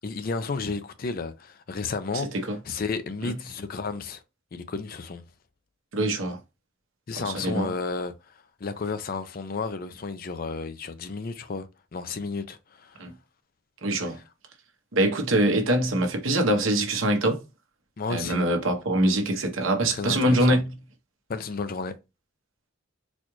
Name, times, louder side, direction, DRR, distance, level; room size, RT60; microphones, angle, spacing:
voice 1, 0.0-2.3 2.7-4.2 4.5-5.2 7.1-8.1 8.6-13.0 14.1-14.2 18.0-18.5 19.9-20.6 21.3-21.9, left 4 dB, 45° left, 0.4 m, -32 dB
voice 2, 5.9-6.4 7.2-7.7 13.0-13.1 13.8-14.2 14.9-17.4 18.1-20.7, right 1 dB, 75° right, 1.0 m, -24 dB
4.1 x 2.4 x 3.0 m
head